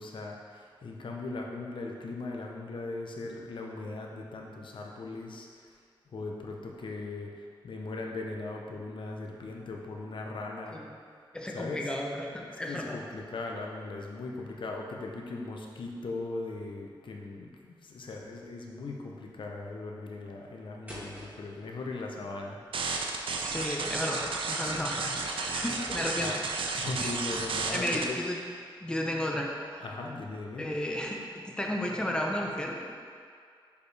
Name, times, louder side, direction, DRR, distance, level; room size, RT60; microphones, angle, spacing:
voice 1, 0.0-5.5 6.1-10.8 11.5-11.9 12.3-22.6 25.1-25.2 25.5-25.6 26.2-26.3 26.8-28.2 29.8-30.7, left 3 dB, 65° left, 0 dB, 0.8 m, -39 dB
voice 2, 11.3-13.0 23.4-26.4 26.6-26.7 27.0-27.1 27.7-28.4 28.8-29.8 30.6-32.9, left 1 dB, 10° left, -1 dB, 0.7 m, -33 dB
sound 1, 20.9-26.6, equal, 20° right, 1.5 m, -50 dB
sound 2, 22.7-28.0, right 4 dB, 75° right, 0.5 m, -32 dB
6.7 x 5.2 x 3.3 m, 2.2 s
wide cardioid pair, 130°, 9 cm